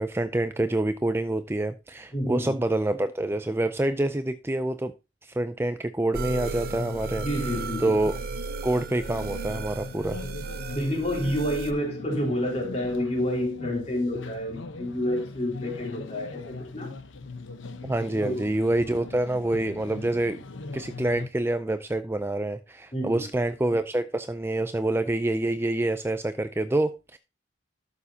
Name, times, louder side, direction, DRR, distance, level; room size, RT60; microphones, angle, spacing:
voice 1, 0.0-4.9 5.2-7.3 7.8-8.1 8.6-10.2 17.8-20.4 20.7-27.2, right 1 dB, 10° right, 0.4 m, -27 dB
voice 2, 2.1-2.5 7.2-8.0 10.7-17.0 18.1-18.4 22.9-23.3, left 1 dB, 35° left, 3.8 m, -29 dB
sound 1, 6.1-11.7, right 5 dB, 50° right, 0.7 m, -35 dB
sound 2, 6.2-21.3, left 3 dB, 75° left, 1.0 m, -40 dB
12.5 x 7.0 x 2.8 m
head